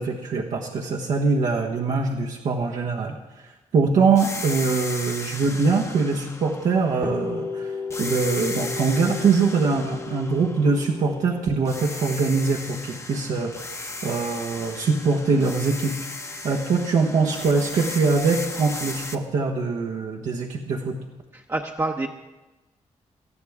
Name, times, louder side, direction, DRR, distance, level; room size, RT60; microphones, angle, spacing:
voice 1, 0.0-3.1 3.7-7.7 8.0-13.5 14.0-15.9 16.4-21.0, right 4 dB, 80° right, -3 dB, 1.4 m, -23 dB
sound 1, 4.2-7.4 7.9-11.3 11.7-19.2, left 2 dB, 20° left, 1.0 m, -36 dB
sound 2, 7.0-14.7, left 4 dB, ahead, 1.2 m, -35 dB
voice 2, 21.3-22.1, right 2 dB, 25° right, 0 dB, 0.9 m, -27 dB
19.5 x 13.5 x 3.6 m, 1.1 s
cardioid pair, 85°, 13 cm